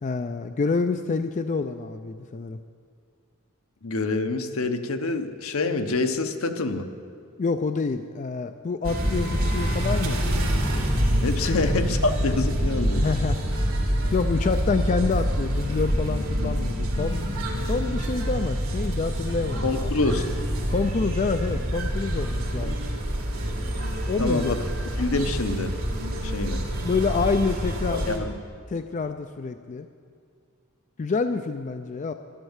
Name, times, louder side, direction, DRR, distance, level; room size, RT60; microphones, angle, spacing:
voice 1, 0.0-2.6 7.4-10.2 11.5-11.6 12.7-13.4 14.1-17.2 17.7-19.9 20.7-22.8 24.1-24.5 26.8-28.3 28.7-29.9 31.0-32.1, left 4 dB, 35° left, 8 dB, 0.4 m, -27 dB
voice 2, 3.8-6.9 11.2-13.1 19.6-20.3 24.2-24.6 25.0-25.7 26.2-26.6 27.9-28.3, left 3 dB, 75° left, 7 dB, 0.9 m, -26 dB
sound 1, 8.8-28.2, equal, 80° right, 2.2 m, -26 dB
11.5 x 11.0 x 7.2 m, 2.2 s
head